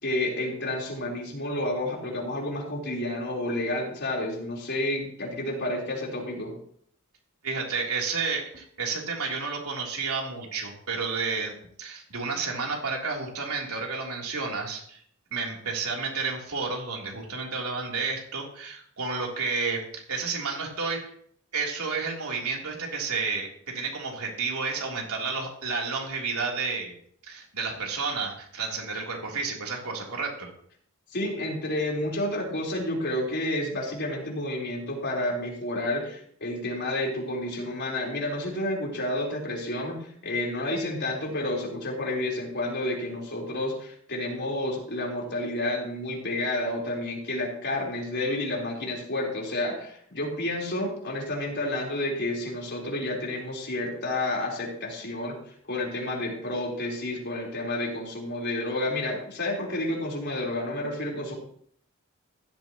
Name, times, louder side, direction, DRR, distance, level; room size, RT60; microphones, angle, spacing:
voice 1, 0.0-6.5 31.1-55.4 55.6-61.4, left 1 dB, 50° left, -2 dB, 4.1 m, -30 dB
voice 2, 7.4-11.5 11.8-15.0 15.3-21.1 21.5-26.9 27.3-30.5, right 4 dB, 85° right, -1 dB, 3.4 m, -31 dB
15.5 x 13.0 x 3.0 m, 0.63 s
head